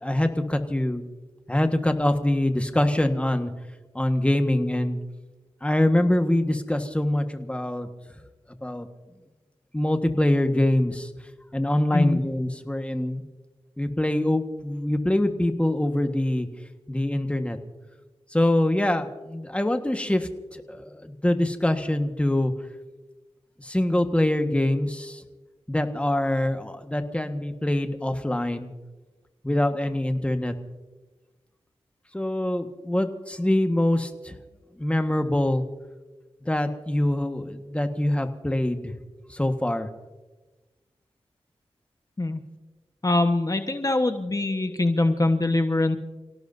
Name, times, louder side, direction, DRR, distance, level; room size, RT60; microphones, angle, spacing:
voice 1, 0.0-1.0 1.5-3.5 3.9-5.0 5.6-7.9 8.6-8.9 9.7-11.1 11.5-13.2 13.8-16.5 16.9-17.6 18.3-22.5 23.6-25.2 25.7-28.7 29.4-30.5 32.1-34.4 34.8-35.6 36.4-38.9 39.3-39.9, left 1 dB, 10° left, 6 dB, 1.5 m, -24 dB
voice 2, 43.0-46.0, left 2 dB, 35° left, 6 dB, 1.2 m, -23 dB
29.0 x 17.5 x 2.7 m, 1.2 s
cardioid pair, 50°, 11 cm